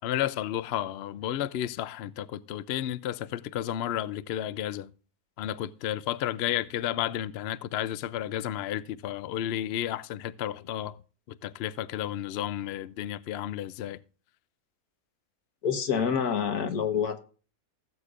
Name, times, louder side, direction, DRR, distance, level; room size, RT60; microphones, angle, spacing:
voice 1, 0.0-4.9 5.4-11.0 11.4-14.0, left 11 dB, 65° left, 0.6 m, -32 dB
voice 2, 15.6-17.2, left 7 dB, 85° left, 1.7 m, -27 dB
16.5 x 8.2 x 2.5 m
omnidirectional pair, 1.6 m